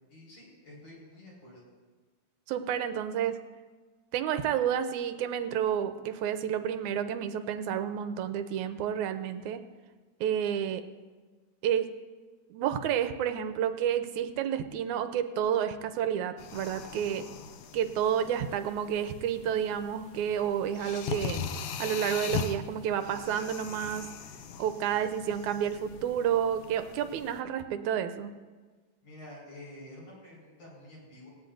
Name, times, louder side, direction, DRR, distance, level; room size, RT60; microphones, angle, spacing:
voice 1, 0.1-1.7 29.0-31.3, left 1 dB, 50° left, -4 dB, 6.1 m, -49 dB
voice 2, 2.5-3.4 4.1-9.6 10.2-10.8 11.6-11.9 12.5-17.3 17.7-21.4 21.8-24.1 24.6-28.3, right 9 dB, 80° right, 9 dB, 2.0 m, -30 dB
sound 1, 16.4-27.4, left 6 dB, 70° left, 1.7 m, -40 dB
19.0 x 16.5 x 2.6 m, 1.4 s
omnidirectional pair, 3.6 m